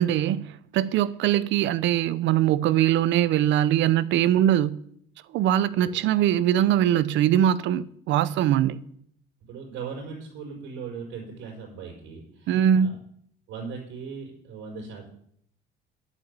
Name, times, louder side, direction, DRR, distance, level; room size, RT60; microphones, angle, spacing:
voice 1, 0.0-4.8 5.3-8.8 12.5-12.9, right 11 dB, 70° right, 0.8 m, -22 dB
voice 2, 9.5-13.0 13.5-15.1, right 5 dB, 90° right, 5.1 m, -39 dB
11.0 x 8.6 x 8.3 m
cardioid pair, 135°, 20 cm